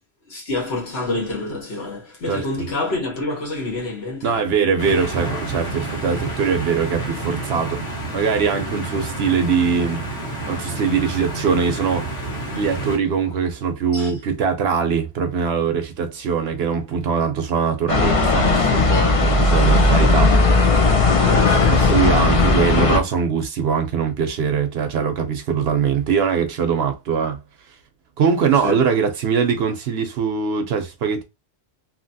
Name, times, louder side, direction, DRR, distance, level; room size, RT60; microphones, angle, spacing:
voice 1, 0.3-4.5 13.9-14.1 21.2-21.9 28.5-28.8, left 2 dB, 60° left, 1.5 m, -27 dB
voice 2, 2.3-2.7 4.2-7.8 8.1-10.0 10.5-12.1 12.5-20.3 21.2-27.4 28.2-31.2, right 6 dB, 65° right, 0.8 m, -22 dB
sound 1, 4.8-13.0, right 2 dB, 80° left, 1.5 m, -29 dB
sound 2, 17.9-23.0, left 3 dB, 45° left, 0.5 m, -16 dB
2.8 x 2.8 x 2.6 m
omnidirectional pair, 1.2 m